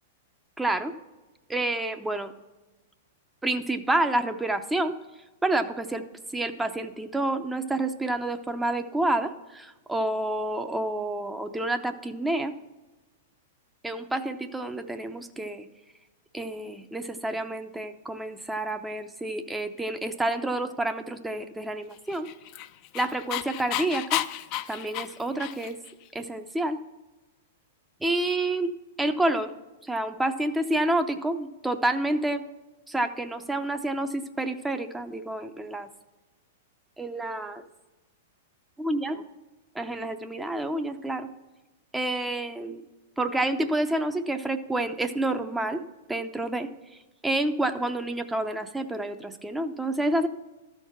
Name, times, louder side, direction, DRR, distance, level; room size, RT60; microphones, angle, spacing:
voice 1, 0.6-1.0 1.5-2.3 3.4-5.0 5.4-6.1 6.3-12.5 13.8-15.7 16.3-22.3 22.9-24.2 24.7-25.8 26.1-26.8 28.0-29.5 29.9-32.4 32.9-35.9 37.0-37.6 38.8-39.2 39.8-41.3 41.9-42.9 43.2-45.8 46.1-46.7 47.2-50.3, right 1 dB, 10° right, 8 dB, 0.6 m, -29 dB
Dog, 22.1-25.9, left 14 dB, 45° left, 0.4 m, -32 dB
13.0 x 4.6 x 5.7 m, 1.1 s
hypercardioid pair, 110°, 0 cm